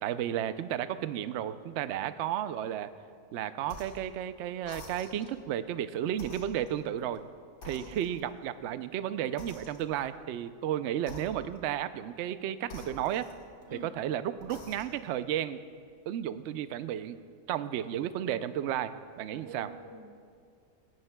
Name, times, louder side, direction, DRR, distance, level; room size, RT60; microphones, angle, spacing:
voice 1, 0.0-2.9 3.3-7.2 7.6-13.3 13.7-15.6 16.1-17.2 17.5-19.7, right 11 dB, 70° right, 12 dB, 0.6 m, -33 dB
sound 1, 3.6-4.1 4.6-5.4 6.1-7.2 7.6-8.4 9.4-10.1 11.0-11.7 12.6-13.8 14.4-15.1, left 2 dB, 80° left, 2.0 m, -48 dB
voice 2, 19.3-20.3, right 2 dB, 25° right, -1 dB, 0.5 m, -47 dB
19.0 x 17.0 x 2.2 m, 2.2 s
omnidirectional pair, 1.7 m